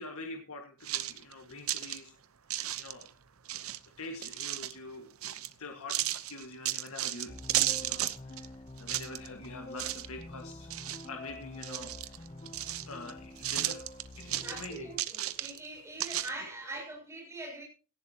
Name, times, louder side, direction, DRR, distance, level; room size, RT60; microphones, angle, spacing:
voice 1, 0.0-2.1 2.8-3.1 3.6-3.7 4.0-5.1 5.6-8.5 8.8-10.7 11.0-12.1 12.9-13.8 14.2-14.9, left 2 dB, 85° left, 1.8 m, -45 dB
sound 1, 0.8-2.0 2.5-3.1 3.5-4.8 5.2-5.5 5.9-8.5 8.8-9.5 9.8-10.2 10.5-11.3 11.6-13.1 13.4-15.7 16.0-16.3, right 13 dB, 80° right, 0.9 m, -34 dB
sound 2, 7.3-15.0, left 1 dB, 30° left, 0.7 m, -47 dB
voice 2, 14.4-17.6, right 2 dB, 15° right, 7.3 m, -42 dB
17.5 x 15.0 x 2.9 m
head